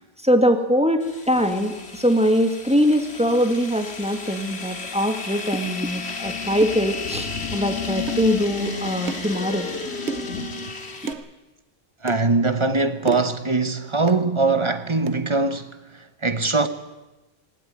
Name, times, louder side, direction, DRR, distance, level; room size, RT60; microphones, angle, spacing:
voice 1, 0.2-9.7, equal, 5° right, 1.9 m, -22 dB
sound 1, 1.0-11.1, left 4 dB, 75° left, 2.3 m, -32 dB
sound 2, 8.1-8.3 9.1-9.3 10.1-10.4 11.1-11.3 12.1-12.2 13.1-13.4 14.1-14.3 15.1-15.2, right 6 dB, 85° right, 1.2 m, -31 dB
voice 2, 12.0-15.8 16.2-16.7, right 3 dB, 25° right, 1.2 m, -21 dB
18.0 x 18.0 x 9.4 m
omnidirectional pair, 1.1 m